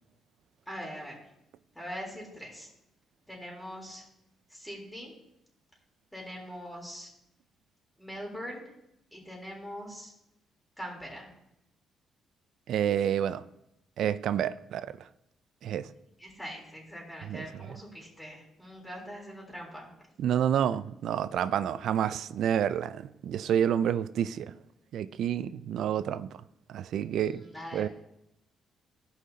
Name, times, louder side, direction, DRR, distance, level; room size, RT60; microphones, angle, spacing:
voice 1, 0.7-1.1 1.8-2.7 3.3-4.0 4.5-5.1 6.1-7.1 8.0-8.6 9.1-10.1 10.8-11.3 16.2-19.9 27.2-27.9, equal, 5° left, 3.6 m, -42 dB
voice 2, 12.7-13.4 14.0-14.9 15.6-15.9 17.2-17.7 20.2-24.5 24.9-26.3 26.7-27.4 27.7-27.9, right 9 dB, 75° right, 0.4 m, -29 dB
17.0 x 5.7 x 2.8 m
cardioid pair, 90°, 0 cm